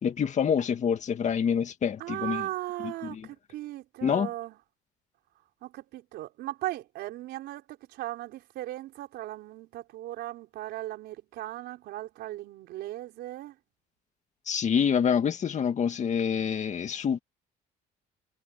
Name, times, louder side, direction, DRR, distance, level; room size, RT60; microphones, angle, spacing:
voice 1, 0.0-2.5 2.8-3.3 4.0-4.3 14.5-17.2, left 7 dB, 45° left, 2.3 m, -27 dB
voice 2, 2.0-4.6 5.6-13.5, right 15 dB, 80° right, 4.6 m, -37 dB
cardioid pair, 110°, 17 cm